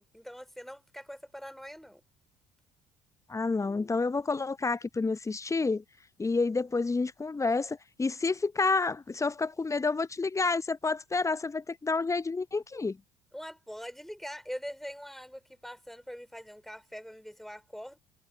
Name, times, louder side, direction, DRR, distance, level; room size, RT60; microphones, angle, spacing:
voice 1, 0.0-2.0 13.3-18.0, equal, ahead, 3.0 m, -43 dB
voice 2, 3.3-5.8 6.2-13.0, left 3 dB, 15° left, 0.8 m, -29 dB
figure-of-eight pair, 55°, 18 cm